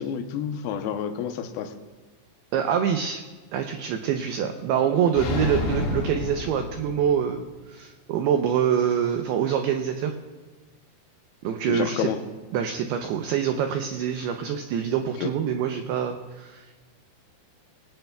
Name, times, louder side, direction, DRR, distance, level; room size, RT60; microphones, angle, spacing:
voice 1, 0.0-1.7 11.7-12.2 15.2-15.3, left 8 dB, 80° left, 6 dB, 2.2 m, -29 dB
voice 2, 2.5-3.2 3.5-10.1 11.4-12.1 12.5-16.6, right 8 dB, 85° right, 5 dB, 2.3 m, -25 dB
sound 1, 5.1-7.3, left 3 dB, 55° left, 2.9 m, -29 dB
21.5 x 18.0 x 2.3 m, 1.3 s
omnidirectional pair, 5.5 m